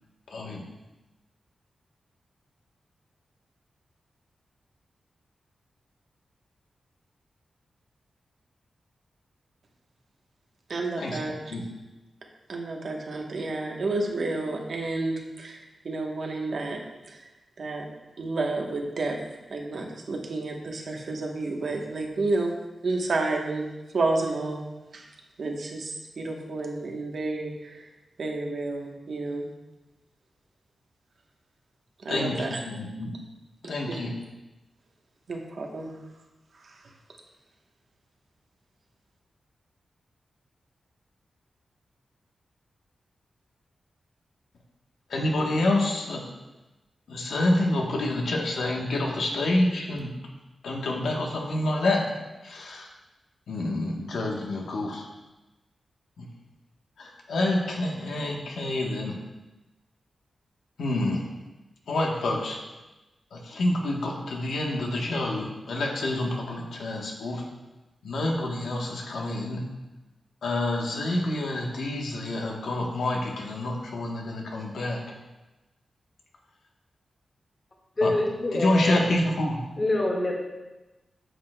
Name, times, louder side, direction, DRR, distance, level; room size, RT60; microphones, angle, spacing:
voice 1, 0.3-0.6 11.0-11.2 11.5-11.6 32.1-33.1 33.6-34.1 45.1-46.2 47.1-50.1 50.6-52.0 52.4-52.9 53.5-55.0 56.2-56.3 57.0-59.1 60.8-61.2 61.9-62.6 63.3-67.4 68.0-69.6 70.4-75.0 78.0-78.1 78.5-79.6, left 1 dB, 90° left, 0 dB, 1.1 m, -27 dB
voice 2, 10.7-11.6 12.5-15.6 15.8-16.8 17.1-17.2 17.6-17.9 18.2-19.2 19.5-22.5 22.8-23.7 23.9-24.6 24.9-25.0 25.4-27.8 28.2-29.5 32.0-32.6 33.9-34.0 35.3-35.9, right 2 dB, 60° right, 1 dB, 1.0 m, -30 dB
voice 3, 78.0-79.0 79.8-80.3, left 2 dB, 35° left, -1 dB, 1.6 m, -25 dB
9.1 x 6.4 x 2.2 m, 1.1 s
wide cardioid pair, 110°, 0 cm